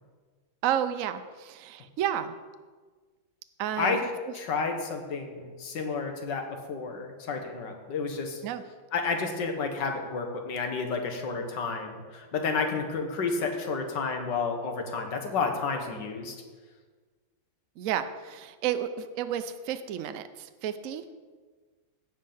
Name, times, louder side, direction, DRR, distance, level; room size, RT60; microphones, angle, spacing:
voice 1, 0.6-2.4 3.6-4.0 8.4-8.6 17.8-21.0, right 10 dB, 80° right, 10 dB, 0.7 m, -31 dB
voice 2, 4.3-8.4 8.9-16.4, left 4 dB, 65° left, 4 dB, 1.9 m, -31 dB
16.0 x 5.5 x 5.5 m, 1.5 s
omnidirectional pair, 2.1 m